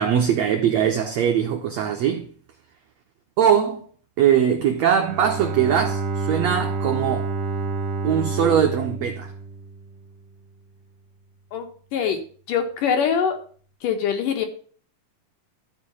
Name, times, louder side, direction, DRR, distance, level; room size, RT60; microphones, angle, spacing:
voice 1, 0.0-2.3 3.4-3.9 4.2-7.3 8.0-9.3, right 8 dB, 80° right, 1.5 m, -21 dB
Bowed string instrument, 5.0-10.2, right 3 dB, 55° right, 2.2 m, -28 dB
voice 2, 12.5-13.4 13.8-14.4, left 7 dB, 65° left, 2.7 m, -23 dB
12.5 x 4.8 x 7.0 m
omnidirectional pair, 4.4 m